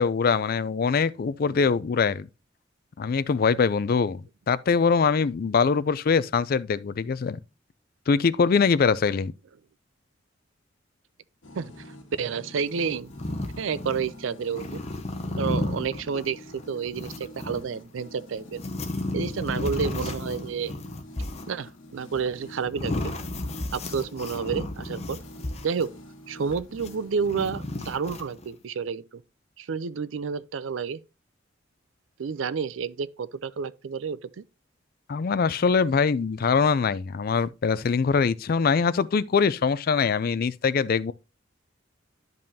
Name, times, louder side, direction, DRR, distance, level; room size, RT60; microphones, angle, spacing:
voice 1, 0.0-2.3 3.0-7.4 8.1-9.3 35.1-41.1, left 5 dB, 50° left, 0.4 m, -23 dB
sound 1, 11.4-27.3, equal, 85° left, 1.4 m, -47 dB
voice 2, 11.5-11.9 12.2-13.1 13.6-14.8 15.4-18.6 19.1-20.7 21.5-23.1 23.7-25.2 25.6-25.9 26.3-29.2 29.6-31.0 32.2-34.4, right 6 dB, 85° right, 0.5 m, -30 dB
sound 2, 12.8-14.1 14.4-17.6 18.4-26.0 26.5-28.5, left 2 dB, 35° left, 0.9 m, -33 dB
10.5 x 5.3 x 2.7 m
head